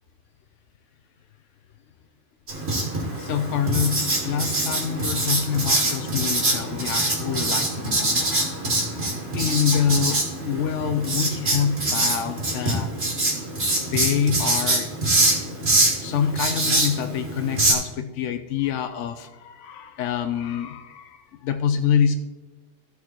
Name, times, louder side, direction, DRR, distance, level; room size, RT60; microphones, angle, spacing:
Writing, 2.5-17.7, right 2 dB, 60° right, 2.3 m, -24 dB
voice 1, 3.2-8.3 9.3-12.9 13.9-14.9 16.0-22.2, left 7 dB, 90° left, 8 dB, 1.0 m, -26 dB
13.5 x 4.7 x 4.4 m, 1.2 s
omnidirectional pair, 1.2 m